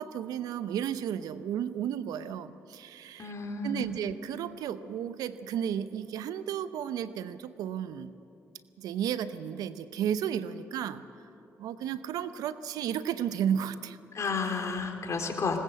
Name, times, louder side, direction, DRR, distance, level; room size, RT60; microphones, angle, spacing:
voice 1, 0.0-3.3 3.6-8.2 8.8-11.0 11.6-14.0, right 9 dB, 75° right, 14 dB, 0.7 m, -33 dB
voice 2, 3.2-4.0 14.1-15.6, left 4 dB, 50° left, 4 dB, 3.4 m, -32 dB
20.0 x 19.5 x 7.9 m, 2.8 s
hypercardioid pair, 50°, 6 cm